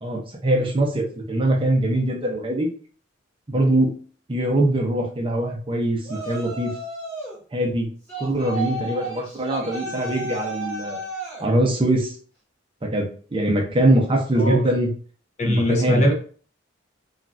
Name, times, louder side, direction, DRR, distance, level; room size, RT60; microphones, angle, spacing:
voice 1, 0.0-2.7 3.5-3.9 4.3-6.7 7.5-7.9 8.2-11.0 11.4-12.1 12.8-14.9 15.5-16.1, right 1 dB, 25° right, 0 dB, 0.6 m, -22 dB
Yell, 6.0-7.4 8.1-11.5, right 1 dB, 5° left, 1.2 m, -33 dB
voice 2, 15.4-16.1, equal, 35° left, 2 dB, 0.5 m, -20 dB
3.1 x 2.4 x 2.4 m, 0.43 s
head